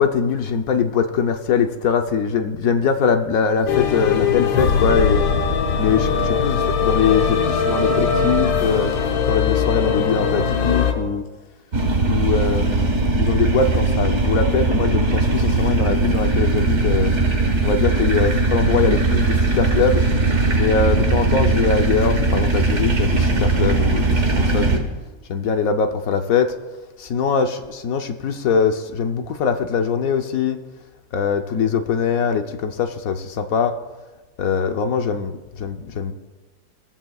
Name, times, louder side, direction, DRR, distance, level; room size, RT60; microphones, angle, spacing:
voice 1, 0.0-5.2 5.8-8.9 9.2-11.2 12.1-17.1 17.6-20.1 20.5-24.8 25.3-26.5 27.0-30.6 31.1-33.8 34.4-36.1, left 6 dB, 60° left, 6 dB, 1.0 m, -22 dB
sound 1, 3.7-10.9, left 6 dB, 90° left, 1.9 m, -20 dB
sound 2, 11.7-24.8, right 3 dB, 40° right, 1.6 m, -19 dB
18.5 x 14.5 x 2.4 m, 1.2 s
omnidirectional pair, 2.0 m